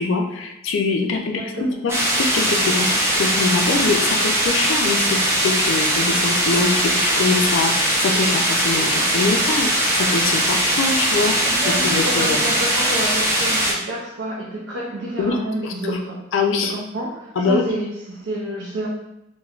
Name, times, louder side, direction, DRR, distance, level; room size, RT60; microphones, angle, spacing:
voice 1, 0.0-12.4 15.2-15.4 15.6-16.0 16.3-16.7 17.4-17.6, left 4 dB, 70° left, 3 dB, 0.4 m, -23 dB
voice 2, 1.2-1.8 11.4-16.2 16.6-18.9, right 1 dB, 65° right, -4 dB, 0.4 m, -29 dB
sound 1, 1.9-13.7, right 1 dB, 15° right, 0.5 m, -20 dB
3.1 x 2.2 x 2.3 m, 0.86 s
head